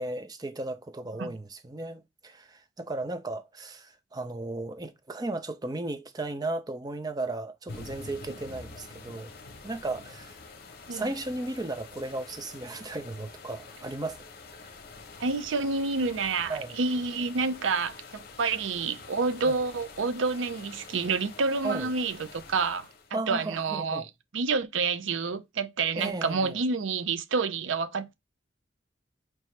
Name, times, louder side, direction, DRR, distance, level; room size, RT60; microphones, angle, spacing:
voice 1, 0.0-9.3 9.6-10.4 10.9-14.2 16.5-16.7 19.5-19.6 21.6-21.9 23.1-24.1 26.0-26.6, right 2 dB, 20° right, 0.4 m, -35 dB
sound 1, 7.7-23.2, left 4 dB, 55° left, 0.8 m, -47 dB
voice 2, 15.2-24.1 24.3-28.1, right 4 dB, 85° right, 0.5 m, -29 dB
4.6 x 2.9 x 3.1 m
head